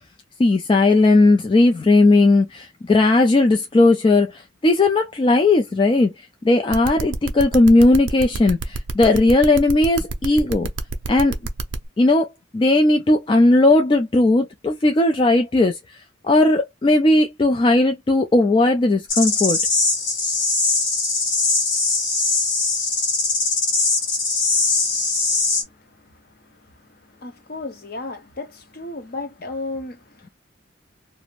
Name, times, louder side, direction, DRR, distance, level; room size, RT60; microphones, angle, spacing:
voice 1, 0.4-6.1 6.4-10.7 11.1-11.4 12.0-15.8 16.2-19.6, left 2 dB, 25° left, 0.3 m, -17 dB
sound 1, 6.7-11.8, right 3 dB, 65° right, 0.5 m, -28 dB
sound 2, 19.1-25.6, left 3 dB, 80° left, 1.0 m, -21 dB
voice 2, 24.5-30.3, left 2 dB, 50° left, 0.7 m, -36 dB
2.5 x 2.1 x 3.0 m
head